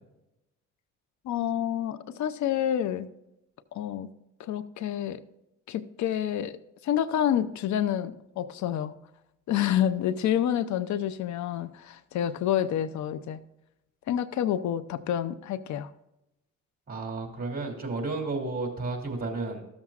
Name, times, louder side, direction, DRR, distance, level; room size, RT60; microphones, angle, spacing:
voice 1, 1.2-3.1 3.7-4.1 4.4-5.2 5.7-8.9 9.5-13.4 14.1-15.9, left 10 dB, 70° left, 13 dB, 0.6 m, -28 dB
voice 2, 16.9-19.6, right 3 dB, 30° right, 1 dB, 2.9 m, -32 dB
14.0 x 7.3 x 2.5 m, 0.91 s
cardioid pair, 90°, 30 cm